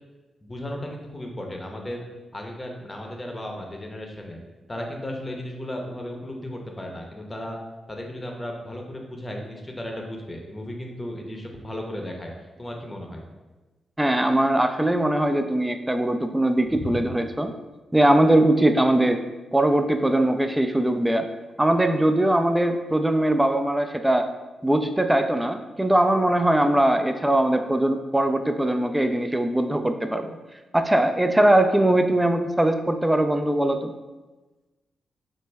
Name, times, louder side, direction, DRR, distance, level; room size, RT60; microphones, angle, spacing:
voice 1, 0.4-2.0 2.3-4.4 4.7-7.6 7.9-12.3 12.6-13.2 16.7-17.1, left 1 dB, 25° left, 1 dB, 0.7 m, -35 dB
voice 2, 14.0-17.5 17.9-19.2 19.5-21.3 21.6-24.3 24.6-30.3 30.7-33.9, right 1 dB, 10° right, 7 dB, 0.3 m, -21 dB
3.2 x 2.1 x 3.3 m, 1.2 s
supercardioid pair, 45°, 0 cm